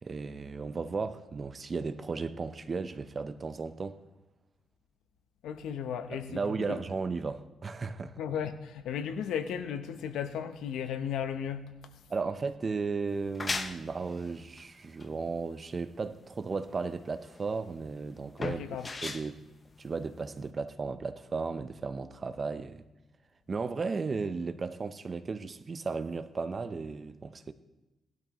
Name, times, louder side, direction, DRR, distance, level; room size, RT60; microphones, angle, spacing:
voice 1, 0.0-4.0 6.1-8.1 12.1-19.4 19.8-22.8 23.5-27.5, right 4 dB, 35° right, 0.7 m, -35 dB
voice 2, 5.4-6.8 8.0-11.7 18.4-18.9, left 8 dB, 90° left, 0.9 m, -35 dB
sound 1, 13.1-20.5, left 3 dB, 30° left, 0.8 m, -40 dB
17.5 x 12.0 x 3.1 m
cardioid pair, 110°, 0 cm